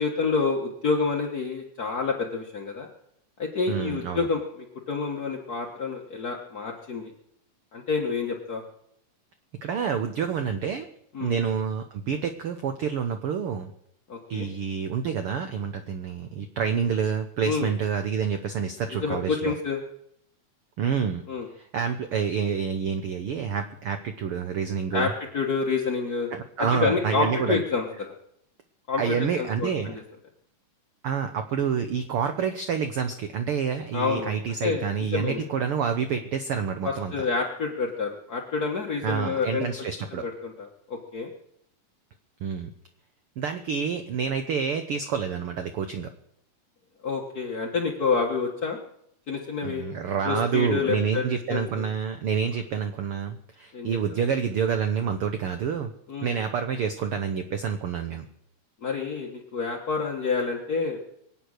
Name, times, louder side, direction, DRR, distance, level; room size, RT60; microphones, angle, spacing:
voice 1, 0.0-2.9 3.4-7.1 7.7-8.6 11.1-11.3 14.1-14.5 17.4-17.7 18.9-19.8 21.3-21.5 24.9-26.3 26.6-27.8 28.9-30.0 33.9-34.3 34.6-34.9 35.1-35.5 36.8-39.7 40.1-41.3 47.0-48.8 49.3-49.9 50.2-51.2 51.5-51.9 53.7-54.0 56.1-56.3 58.8-61.0, left 4 dB, 45° left, 0 dB, 1.2 m, -28 dB
voice 2, 3.7-4.3 9.6-10.9 11.2-13.7 14.3-19.5 20.8-21.2 21.6-25.1 26.3-27.6 29.0-29.9 31.0-37.1 39.0-40.2 42.4-42.7 43.4-46.1 49.6-55.9 56.2-58.2, right 7 dB, 70° right, 7 dB, 1.3 m, -28 dB
24.0 x 8.5 x 6.5 m, 0.73 s
omnidirectional pair, 3.7 m